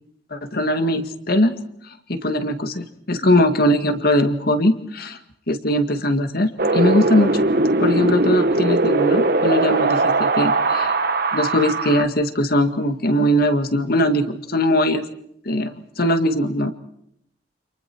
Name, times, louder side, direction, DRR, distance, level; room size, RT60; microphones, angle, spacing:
voice 1, 0.3-1.6 2.1-5.2 5.5-7.4 7.8-10.9 11.3-15.0 15.5-15.7 16.0-16.7, left 1 dB, 55° left, 8 dB, 2.0 m, -20 dB
Wind, 6.6-12.0, right 2 dB, 55° right, 1.5 m, -20 dB
29.5 x 27.5 x 4.6 m, 0.72 s
head